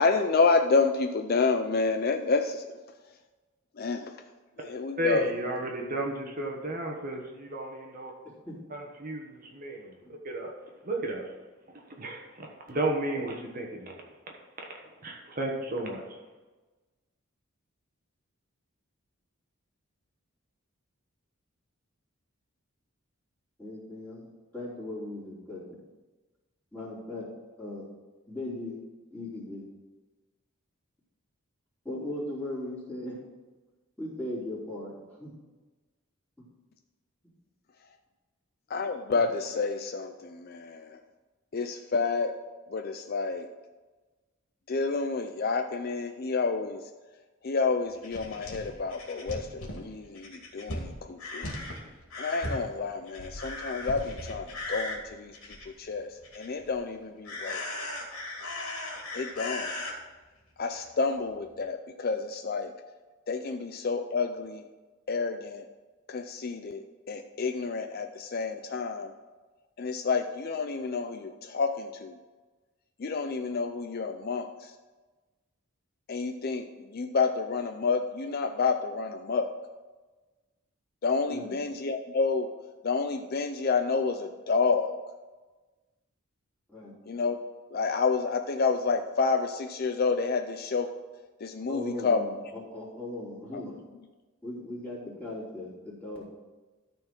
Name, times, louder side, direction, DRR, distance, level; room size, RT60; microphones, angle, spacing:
voice 1, 0.0-2.6 3.8-4.0 4.7-5.3 38.7-40.9 41.5-42.3 42.7-43.5 44.7-46.8 47.4-50.3 50.5-51.5 52.2-55.3 55.8-56.1 56.4-57.6 59.1-59.7 60.6-62.7 63.3-64.6 65.1-65.6 66.1-66.8 67.1-69.1 69.8-72.1 73.0-74.5 76.1-76.6 76.9-79.5 81.0-82.5 82.8-84.9 87.1-87.4 87.7-90.9 91.4-92.2, left 4 dB, 45° left, 6 dB, 0.5 m, -29 dB
voice 2, 5.0-8.1 8.7-10.0 10.2-10.5 10.8-11.3 11.9-14.0 14.6-14.7 15.0-16.0, right 1 dB, 40° right, 1 dB, 1.2 m, -33 dB
voice 3, 23.6-24.3 24.5-25.8 26.7-27.3 27.6-27.9 28.3-28.8 29.1-29.6 31.9-33.2 34.0-34.9 35.2-35.3 39.1-39.3 81.3-81.6 86.7-86.9 91.7-93.8 94.4-96.2, left 1 dB, 5° left, -8 dB, 3.3 m, -38 dB
sound 1, 48.0-55.8 56.2-56.8 57.2-59.9 60.8-60.9 61.2-61.3, left 1 dB, 80° left, 2.5 m, -38 dB
13.0 x 4.4 x 6.1 m, 1.2 s
head